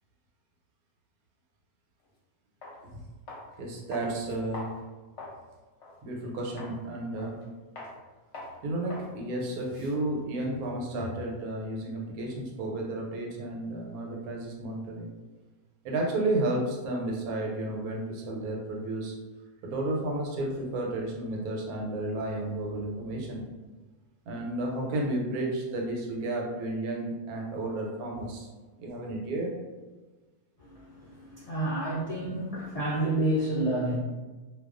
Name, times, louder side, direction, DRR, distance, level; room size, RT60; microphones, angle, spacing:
sound 1, 2.0-2.1 2.6-2.8 3.3-3.5 3.9-5.4 5.8-6.0 6.6-6.8 7.2-7.5 7.8-7.9 8.3-8.6 8.9-9.1 9.4-11.3, left 2 dB, 60° left, 0.8 m, -43 dB
voice 1, 3.6-4.7 6.0-7.4 8.6-15.1 15.8-19.1 19.6-23.4 24.3-28.5 28.8-29.5, right 2 dB, 85° right, -1 dB, 1.1 m, -32 dB
voice 2, 30.6-34.0, right 1 dB, 80° left, -10 dB, 0.3 m, -29 dB
2.3 x 2.3 x 2.4 m, 1.3 s
omnidirectional pair, 1.6 m